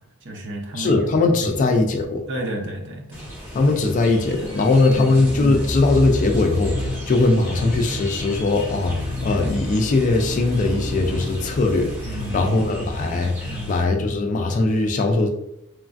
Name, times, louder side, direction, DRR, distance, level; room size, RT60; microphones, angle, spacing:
voice 1, 0.2-1.0 1.4-1.6 2.3-3.6 4.4-5.2 12.0-12.7 13.4-13.8, right 1 dB, 55° right, 1 dB, 0.6 m, -33 dB
voice 2, 0.7-2.2 3.5-15.3, left 3 dB, 35° left, 4 dB, 0.3 m, -20 dB
sound 1, 3.1-13.8, left 1 dB, 10° right, 0.6 m, -30 dB
3.1 x 2.3 x 2.4 m, 0.80 s
head